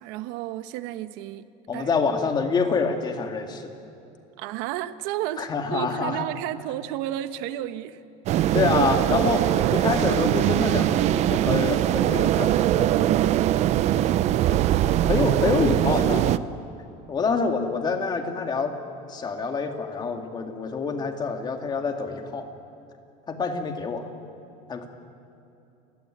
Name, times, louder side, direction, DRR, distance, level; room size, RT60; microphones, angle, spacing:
voice 1, 0.0-1.5 1.7-1.9 4.4-8.0, right 12 dB, 70° right, 12 dB, 1.2 m, -32 dB
voice 2, 1.7-3.7 5.4-6.3 8.5-13.0 13.9-14.1 14.5-14.6 15.0-16.4 17.1-18.8 19.1-22.5 23.3-24.1 24.7-24.9, left 4 dB, 25° left, 5 dB, 2.2 m, -26 dB
sound 1, 8.3-16.4, right 12 dB, 40° right, 0.6 m, -22 dB
30.0 x 17.0 x 10.0 m, 2.8 s
cardioid pair, 150°, 17 cm